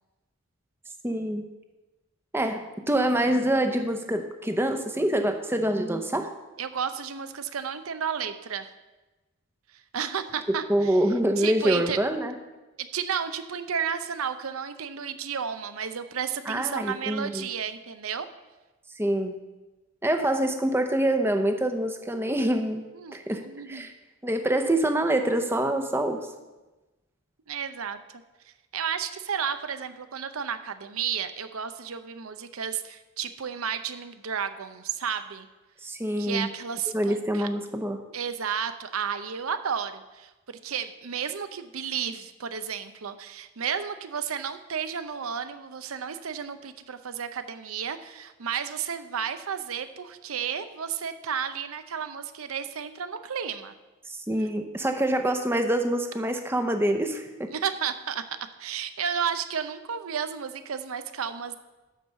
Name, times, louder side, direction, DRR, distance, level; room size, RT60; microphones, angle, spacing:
voice 1, 1.0-1.4 2.3-6.3 10.7-12.3 16.5-17.5 19.0-19.3 20.0-22.8 23.1-23.9 24.2-26.2 35.8-36.5 36.9-38.0 54.1-57.5, right 1 dB, 10° right, 6 dB, 0.7 m, -26 dB
voice 2, 6.6-8.7 9.7-11.0 11.4-12.0 12.8-18.3 22.9-23.9 27.5-28.0 28.5-35.5 36.2-37.5 38.1-53.7 57.5-58.2 58.6-61.6, right 7 dB, 90° right, 10 dB, 0.7 m, -32 dB
11.5 x 4.7 x 6.8 m, 1.1 s
head